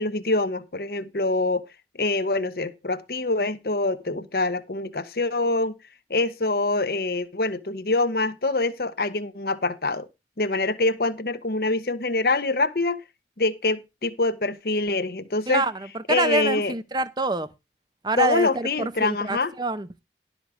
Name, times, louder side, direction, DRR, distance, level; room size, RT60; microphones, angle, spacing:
voice 1, 0.0-1.6 2.0-5.7 6.1-10.1 10.4-13.0 13.4-15.6 16.1-16.7 18.2-19.5, left 2 dB, 60° left, 0.9 m, -25 dB
voice 2, 15.5-17.5 18.0-20.0, right 2 dB, 25° right, 0.7 m, -26 dB
12.0 x 5.2 x 6.1 m
head